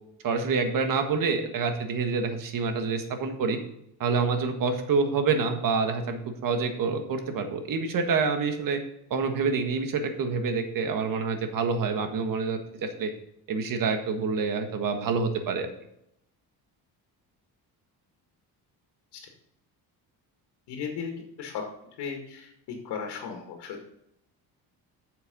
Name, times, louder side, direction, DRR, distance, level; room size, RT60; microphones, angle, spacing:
voice 1, 0.2-3.6 4.0-8.8 9.1-13.1 13.5-15.7, right 4 dB, 55° right, 6 dB, 1.6 m, -27 dB
voice 2, 20.7-21.6 22.0-22.5 22.8-23.9, left 6 dB, 85° left, 2 dB, 2.0 m, -36 dB
8.2 x 6.8 x 5.4 m, 0.78 s
cardioid pair, 135°, 39 cm